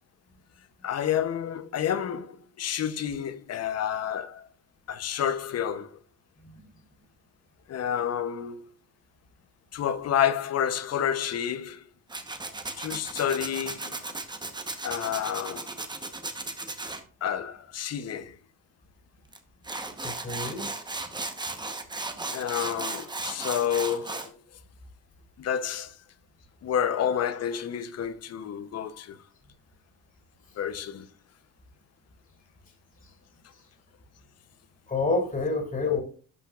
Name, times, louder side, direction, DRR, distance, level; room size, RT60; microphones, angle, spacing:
voice 1, 0.8-4.5 4.9-6.0 7.7-8.7 9.7-11.9 12.8-14.0 14.8-15.7 17.2-18.3 22.3-24.3 25.4-25.9 26.6-29.2 30.6-31.1 35.8-36.0, left 9 dB, 45° left, 0.8 m, -29 dB
Tools, 12.1-17.0 19.3-19.4 19.6-24.3, right 2 dB, 10° right, 1.0 m, -35 dB
voice 2, 20.0-20.7 34.9-36.0, left 2 dB, 25° left, 3.4 m, -28 dB
12.0 x 5.7 x 2.4 m
cardioid pair, 115°, 36 cm